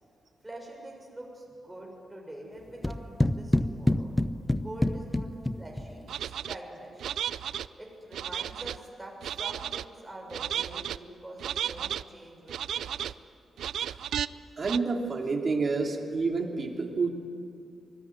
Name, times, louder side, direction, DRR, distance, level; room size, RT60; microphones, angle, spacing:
voice 1, 0.4-4.1 4.6-5.3 5.5-7.1 7.8-13.1, right 1 dB, 10° right, -1 dB, 6.8 m, -45 dB
sound 1, 2.8-6.1, left 1 dB, 10° left, 0.7 m, -27 dB
sound 2, 6.1-6.6 7.0-7.7 8.1-8.8 9.2-9.8 10.3-11.0 11.4-12.0 12.5-13.1 13.6-14.3 14.6-14.8, right 10 dB, 85° right, 0.6 m, -33 dB
voice 2, 14.6-17.1, right 4 dB, 35° right, 2 dB, 3.1 m, -28 dB
26.5 x 21.0 x 9.8 m, 2.5 s
wide cardioid pair, 130°, 0 cm